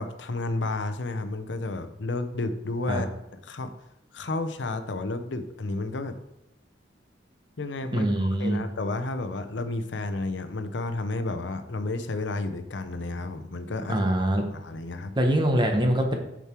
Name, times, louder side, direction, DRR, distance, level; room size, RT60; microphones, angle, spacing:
voice 1, 0.0-3.1 3.4-3.7 4.1-6.2 7.6-14.0 14.5-15.1, left 2 dB, 70° left, 9 dB, 0.7 m, -31 dB
voice 2, 7.9-8.6 13.9-14.5 15.2-16.2, right 1 dB, 25° right, 3 dB, 1.0 m, -23 dB
6.7 x 6.3 x 4.4 m, 0.84 s
head